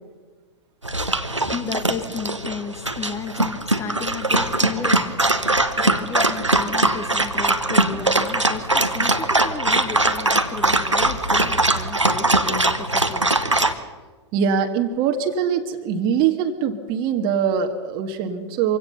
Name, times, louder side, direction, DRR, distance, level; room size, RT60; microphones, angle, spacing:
Dog, 0.8-13.7, right 2 dB, 90° right, 1.3 m, -21 dB
voice 1, 1.1-13.8, left 6 dB, 20° left, 9 dB, 1.9 m, -34 dB
voice 2, 14.3-18.8, right 7 dB, 35° right, 4 dB, 1.7 m, -22 dB
25.0 x 17.0 x 6.9 m, 1.4 s
figure-of-eight pair, 100°, 15 cm